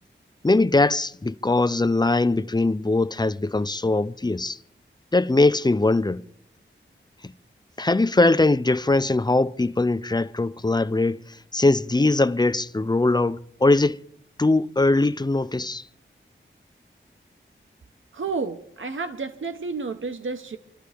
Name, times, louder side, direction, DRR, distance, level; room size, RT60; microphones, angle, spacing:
voice 1, 0.4-4.6 5.1-6.2 7.8-11.2 11.5-14.0 14.4-15.8, left 2 dB, 20° left, 0.5 m, -21 dB
voice 2, 18.1-20.6, right 4 dB, 75° right, 1.0 m, -31 dB
27.5 x 12.5 x 3.4 m
wide cardioid pair, 65°, 21 cm